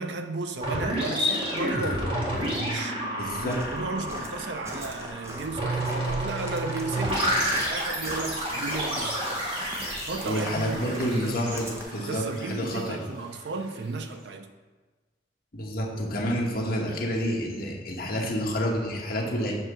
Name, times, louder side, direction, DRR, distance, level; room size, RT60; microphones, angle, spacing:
voice 1, 0.0-3.0 3.4-9.2 10.0-14.5, right 3 dB, 85° right, 0.6 m, -34 dB
sound 1, 0.6-13.3, equal, 35° right, 1.9 m, -30 dB
voice 2, 3.2-3.6 10.3-13.0 15.5-19.5, equal, 55° left, 1.4 m, -29 dB
Walk footsteps, 3.2-11.8, equal, 15° right, 0.9 m, -41 dB
7.4 x 3.4 x 6.2 m
head